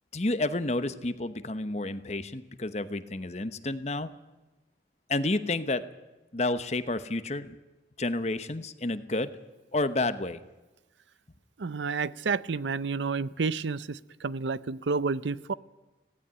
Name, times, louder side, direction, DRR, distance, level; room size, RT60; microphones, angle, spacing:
voice 1, 0.1-4.1 5.1-5.9 6.3-7.6 8.0-9.4 9.7-10.4, left 2 dB, 35° left, 11 dB, 1.0 m, -30 dB
voice 2, 11.6-15.5, right 4 dB, 85° right, 18 dB, 0.6 m, -30 dB
17.0 x 17.0 x 9.9 m, 1.1 s
head